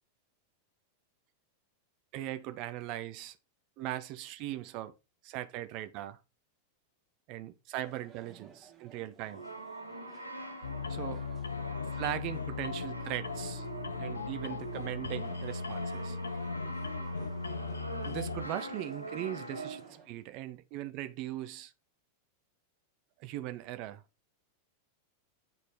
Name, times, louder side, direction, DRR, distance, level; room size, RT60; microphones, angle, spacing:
voice 1, 2.1-3.4 3.8-4.9 5.2-6.2 7.3-9.4 10.9-11.2 11.9-13.7 14.0-16.2 18.1-21.7 23.2-24.0, right 14 dB, 40° right, 0.6 m, -39 dB
sound 1, 7.8-20.1, right 7 dB, 25° right, 1.5 m, -60 dB
Brass instrument, 9.2-20.1, right 1 dB, 85° right, 0.9 m, -44 dB
sound 2, 10.6-18.5, left 4 dB, 75° left, 0.6 m, -38 dB
8.8 x 4.1 x 3.2 m
figure-of-eight pair, 90°, 0 cm